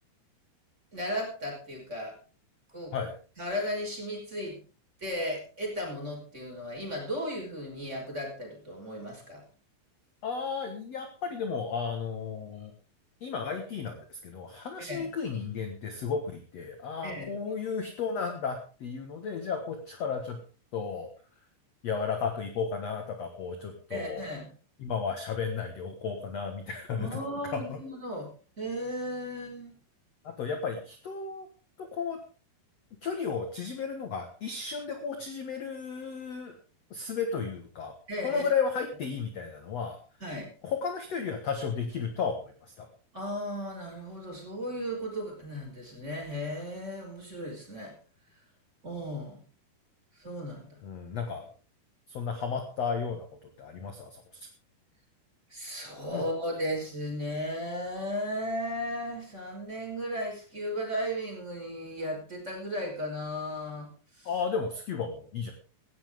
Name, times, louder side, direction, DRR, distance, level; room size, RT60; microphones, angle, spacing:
voice 1, 0.9-2.1 2.7-2.9 3.4-4.6 5.0-9.4 14.8-15.1 17.0-17.3 23.9-24.5 26.9-28.3 28.6-29.7 38.1-38.4 40.2-40.5 43.1-47.9 48.8-49.4 50.1-50.8 55.5-64.3, equal, 15° right, 0 dB, 5.3 m, -35 dB
voice 2, 10.2-12.7 13.2-20.4 20.7-21.1 21.8-24.3 24.8-27.2 27.5-27.8 30.2-31.5 31.8-32.2 33.0-36.6 36.9-37.9 38.2-40.0 40.6-42.9 50.8-51.5 52.1-53.3 53.6-54.5 56.1-56.2 64.3-65.5, left 5 dB, 55° left, 5 dB, 2.0 m, -33 dB
17.5 x 14.5 x 3.6 m, 0.37 s
omnidirectional pair, 4.7 m